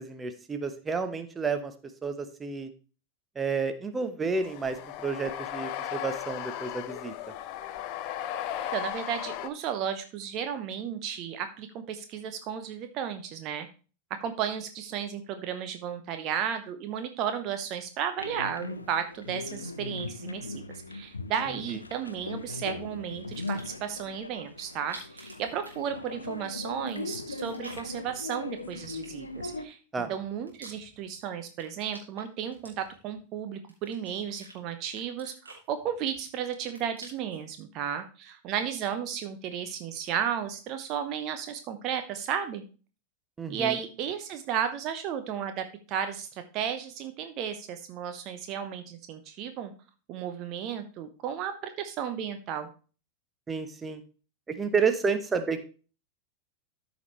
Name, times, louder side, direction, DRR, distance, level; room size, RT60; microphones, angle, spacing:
voice 1, 0.0-1.7 2.0-2.7 3.3-7.1 21.5-21.8 29.9-30.1 43.4-43.8 53.5-54.0 54.5-55.7, right 5 dB, 15° right, 9 dB, 1.0 m, -30 dB
sound 1, 4.3-9.5, left 11 dB, 40° left, 0.7 m, -36 dB
voice 2, 8.7-13.7 14.1-20.6 20.9-29.8 30.1-42.6 43.5-49.7 50.1-52.7, right 8 dB, 40° right, 8 dB, 0.8 m, -34 dB
sound 2, 18.2-29.6, left 3 dB, 80° left, 0.7 m, -39 dB
sound 3, 23.3-23.9 24.7-26.4 26.6-28.0 28.8-29.6 30.1-31.2 31.5-33.2 33.7-34.6 34.9-36.2 36.5-37.4, right 2 dB, 80° right, 2.8 m, -49 dB
13.5 x 5.2 x 3.1 m, 0.36 s
figure-of-eight pair, 90°, 0 cm